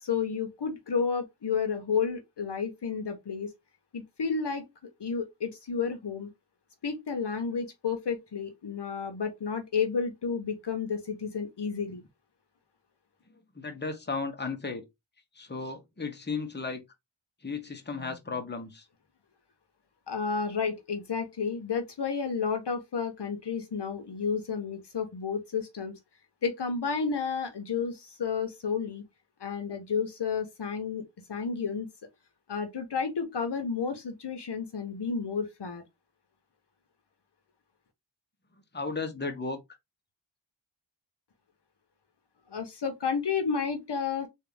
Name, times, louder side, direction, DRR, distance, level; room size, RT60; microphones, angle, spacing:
voice 1, 0.0-3.5 3.9-4.6 5.0-6.3 6.8-12.0 20.1-26.0 26.4-29.0 29.4-31.0 31.3-31.9 32.5-35.8 42.5-44.3, left 5 dB, 60° left, 1.0 m, -31 dB
voice 2, 13.5-14.8 15.3-16.8 17.4-18.8 38.7-39.6, left 4 dB, 20° left, 1.1 m, -34 dB
3.5 x 2.8 x 3.3 m
cardioid pair, 45°, 47 cm